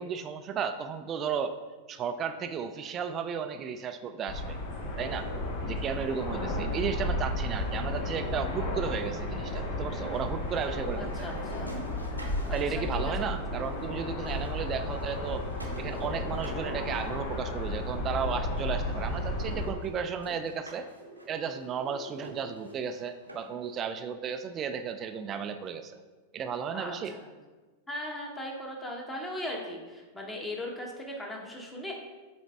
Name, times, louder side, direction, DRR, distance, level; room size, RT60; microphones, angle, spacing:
voice 1, 0.0-1.6 1.9-4.6 5.0-5.3 5.7-11.3 12.5-15.4 15.8-20.9 21.3-26.0 26.3-27.1, right 7 dB, 30° right, 9 dB, 0.4 m, -34 dB
sound 1, 4.3-19.7, left 1 dB, 50° left, 1.0 m, -33 dB
sound 2, 10.2-13.9 14.1-17.9 18.6-18.7 19.1-19.2 19.5-23.7, right 1 dB, 85° right, 0.9 m, -50 dB
voice 2, 11.0-11.7 12.5-13.6 26.7-27.3 27.9-31.9, left 1 dB, 10° left, 0 dB, 1.2 m, -39 dB
sound 3, 15.2-22.9, right 2 dB, 80° left, 1.7 m, -50 dB
7.0 x 4.2 x 3.4 m, 1.3 s
figure-of-eight pair, 90°, 0 cm